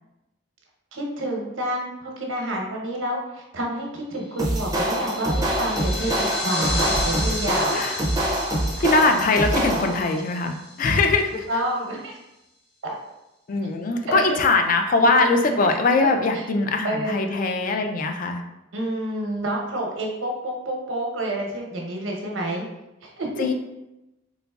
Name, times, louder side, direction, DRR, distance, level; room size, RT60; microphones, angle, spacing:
voice 1, 0.9-7.8 11.5-12.2 12.8-12.9 14.1-14.4 16.0-16.1 16.3-16.4 16.8-17.3 18.7-22.6 23.0-23.5, right 1 dB, 85° right, -1 dB, 0.8 m, -28 dB
sound 1, 4.3-11.2, left 1 dB, 60° left, 0.7 m, -33 dB
sound 2, 4.4-10.1, right 1 dB, 15° right, 0.5 m, -25 dB
voice 2, 7.7-8.0 8.8-11.5 13.5-18.4 23.4-23.5, left 3 dB, 45° left, 5 dB, 0.3 m, -21 dB
3.9 x 2.9 x 2.3 m, 0.95 s
head